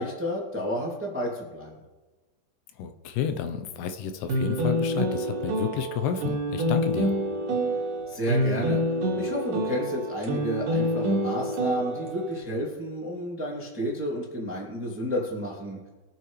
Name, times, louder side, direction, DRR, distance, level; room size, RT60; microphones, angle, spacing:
voice 1, 0.0-1.7 8.1-8.8 9.1-15.8, equal, 5° right, -4 dB, 1.2 m, -31 dB
voice 2, 2.8-7.1, left 8 dB, 80° left, 7 dB, 2.8 m, -31 dB
sound 1, 4.3-12.4, equal, 60° right, 3.1 m, -27 dB
22.5 x 7.7 x 3.2 m, 1.2 s
omnidirectional pair, 4.8 m